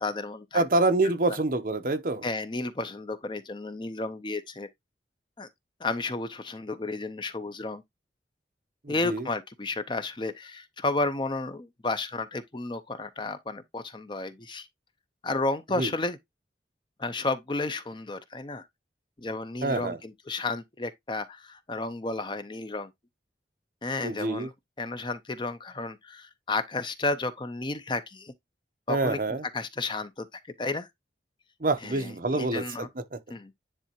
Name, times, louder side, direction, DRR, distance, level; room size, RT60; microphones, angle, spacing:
voice 1, 0.0-0.6 2.2-4.7 5.4-5.5 5.8-7.8 8.9-14.7 15.2-16.2 17.0-18.7 19.2-22.9 23.8-24.5 24.8-28.3 28.9-29.2 29.5-30.9 31.8-32.9 33.3-33.6, left 2 dB, 25° left, 0.6 m, -32 dB
voice 2, 0.5-2.3 8.8-9.3 15.8-15.9 19.6-20.0 24.0-24.5 28.9-29.5 31.6-33.2, right 2 dB, 50° right, 0.8 m, -27 dB
10.0 x 3.4 x 2.9 m
head